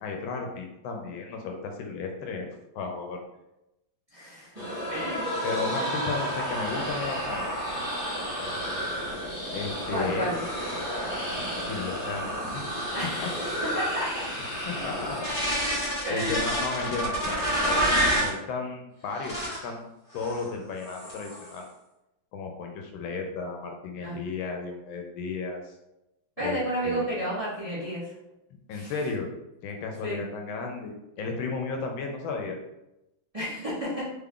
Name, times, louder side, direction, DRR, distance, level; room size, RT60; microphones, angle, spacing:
voice 1, 0.0-2.5 2.7-3.2 5.4-7.5 9.5-10.3 11.4-12.7 13.0-13.3 14.5-15.2 15.5-17.9 18.2-19.4 19.6-19.8 20.1-21.7 22.3-25.7 26.4-27.1 28.7-29.3 29.6-32.6, left 4 dB, 80° left, 2 dB, 1.3 m, -34 dB
voice 2, 4.1-5.3 5.8-6.0 9.9-10.3 12.9-13.5 13.7-14.3 16.0-16.4 24.0-24.2 26.4-28.0 28.7-28.9 30.0-30.2 33.3-34.0, equal, 25° right, -10 dB, 1.0 m, -32 dB
sound 1, 4.6-18.4 19.1-19.7 20.1-20.5 20.8-21.5, equal, 30° left, 1.0 m, -30 dB
3.5 x 2.3 x 3.6 m, 0.90 s
omnidirectional pair, 2.2 m